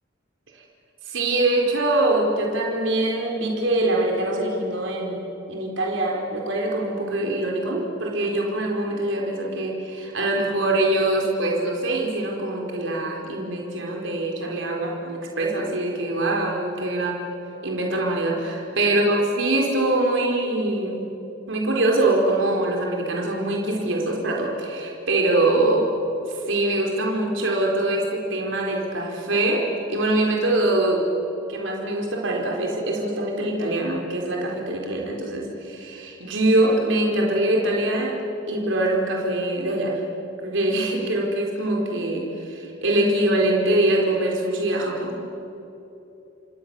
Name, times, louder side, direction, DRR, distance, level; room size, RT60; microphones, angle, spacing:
voice 1, 1.1-17.3 17.6-21.1 21.5-25.9 26.3-31.1 31.5-38.2 38.5-40.1 40.4-45.2, right 1 dB, 70° right, 0 dB, 4.5 m, -23 dB
30.0 x 26.0 x 7.1 m, 2.9 s
head